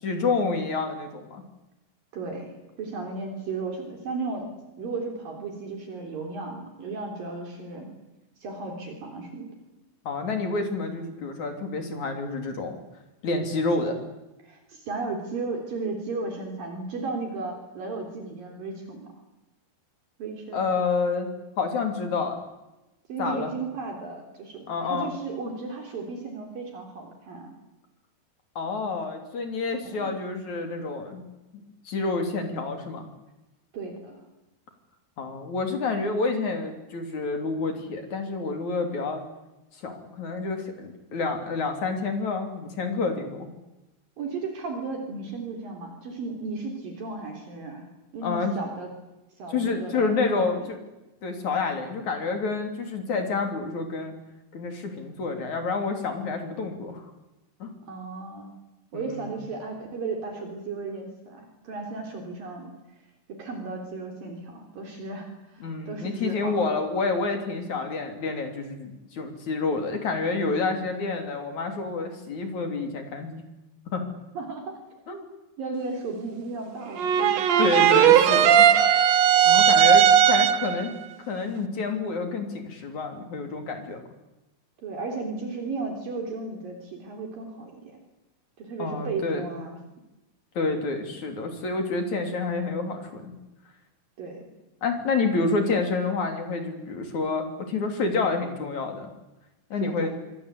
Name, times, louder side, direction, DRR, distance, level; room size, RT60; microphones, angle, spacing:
voice 1, 0.0-1.4 10.1-12.8 13.2-14.0 20.5-22.4 23.2-23.5 24.7-25.1 28.6-31.2 31.5-33.1 35.2-39.2 39.8-43.5 48.2-48.5 49.5-50.8 51.2-54.1 54.5-57.1 57.6-57.7 58.9-59.2 65.6-73.4 73.9-74.0 75.1-75.2 77.6-78.7 79.5-80.9 81.3-84.0 88.8-89.5 90.6-93.3 94.8-99.1 99.7-100.1, left 4 dB, 45° left, 5 dB, 4.2 m, -28 dB
voice 2, 2.1-2.5 2.8-4.5 4.8-7.9 8.4-9.5 14.4-19.1 20.2-20.6 23.1-27.5 29.8-30.1 33.7-34.2 44.2-47.9 48.1-48.9 49.4-50.5 57.9-58.5 58.9-62.7 63.4-66.6 74.3-74.8 75.6-77.4 84.8-88.0 88.6-89.8 94.2-94.5 99.7-100.1, right 3 dB, 55° right, 3 dB, 4.9 m, -35 dB
sound 1, 77.0-80.8, right 9 dB, 90° right, 1.5 m, -17 dB
25.5 x 23.5 x 8.4 m, 1.0 s
omnidirectional pair, 4.9 m